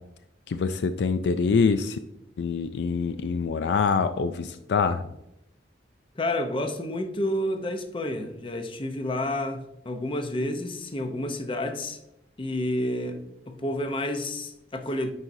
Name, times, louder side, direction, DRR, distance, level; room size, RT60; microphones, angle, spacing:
voice 1, 0.5-2.0 2.4-5.0, left 5 dB, 70° left, 10 dB, 0.3 m, -25 dB
voice 2, 6.2-12.0 12.4-13.2 13.5-15.1, left 1 dB, 30° left, 7 dB, 0.7 m, -30 dB
9.5 x 4.7 x 2.6 m, 0.84 s
head